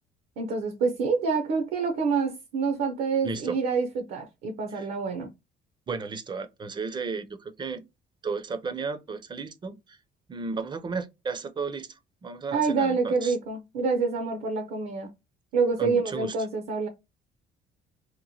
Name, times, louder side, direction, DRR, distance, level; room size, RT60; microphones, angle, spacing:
voice 1, 0.4-5.3 12.5-15.1 15.5-16.9, right 4 dB, 70° right, 0.6 m, -27 dB
voice 2, 3.2-3.6 4.7-4.9 5.9-7.8 8.2-10.0 10.3-13.4 15.8-16.4, right 4 dB, 25° right, 0.5 m, -34 dB
2.9 x 2.1 x 2.7 m
cardioid pair, 110°, 17 cm